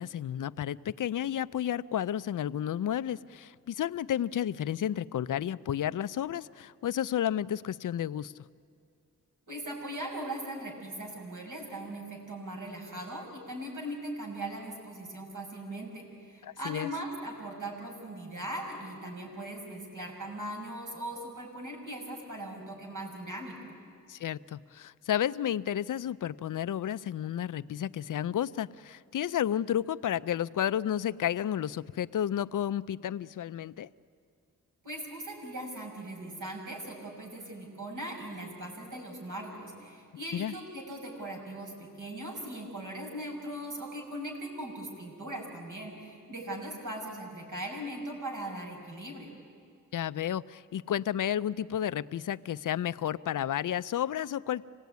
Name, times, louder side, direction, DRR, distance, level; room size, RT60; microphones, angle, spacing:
voice 1, 0.0-8.3 16.4-16.9 24.1-33.9 40.3-40.5 49.9-54.6, left 10 dB, 70° left, 15 dB, 0.5 m, -32 dB
voice 2, 9.5-23.7 34.8-49.3, right 1 dB, 65° right, 0 dB, 6.2 m, -39 dB
27.0 x 17.5 x 9.4 m, 2.4 s
cardioid pair, 75°, 33 cm